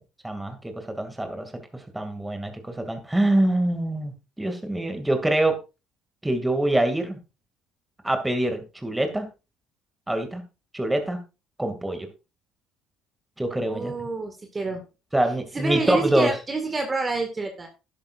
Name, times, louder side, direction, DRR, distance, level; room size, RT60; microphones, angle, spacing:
voice 1, 0.2-5.6 6.2-7.2 8.0-9.3 10.1-10.4 10.7-11.2 11.6-12.1 13.4-13.9 15.1-16.3, right 1 dB, 10° right, 6 dB, 2.6 m, -25 dB
voice 2, 13.7-14.8 15.5-17.7, right 3 dB, 25° right, 4 dB, 2.1 m, -28 dB
11.5 x 11.0 x 2.6 m, 0.28 s
hypercardioid pair, 65°, 0 cm